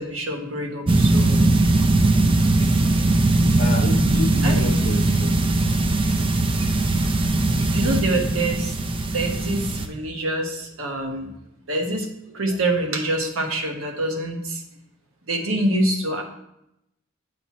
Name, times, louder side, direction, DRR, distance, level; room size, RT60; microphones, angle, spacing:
voice 1, 0.0-1.4 2.4-3.2 4.4-4.6 7.7-8.8 9.1-11.3 11.7-14.6 15.3-16.2, right 1 dB, 80° right, 2 dB, 1.1 m, -26 dB
sound 1, 0.9-9.9, right 2 dB, 25° right, 0.4 m, -20 dB
voice 2, 3.6-5.7, left 2 dB, 50° left, 6 dB, 0.6 m, -31 dB
7.6 x 3.0 x 5.6 m, 0.82 s
head